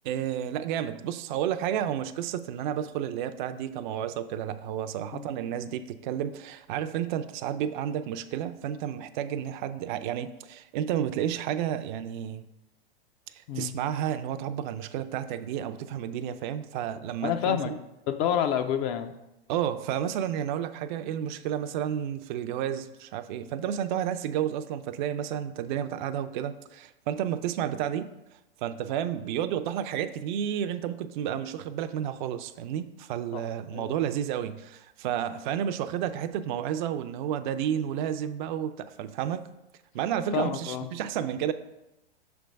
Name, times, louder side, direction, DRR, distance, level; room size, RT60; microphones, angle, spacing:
voice 1, 0.0-12.5 13.3-17.7 19.5-28.1 28.6-39.4 39.9-41.5, right 10 dB, 50° right, 10 dB, 0.4 m, -31 dB
voice 2, 17.2-19.1 33.3-33.4 33.7-34.0 40.3-40.9, left 9 dB, 40° left, 8 dB, 0.4 m, -29 dB
5.9 x 3.4 x 5.1 m, 0.92 s
hypercardioid pair, 115°, 30 cm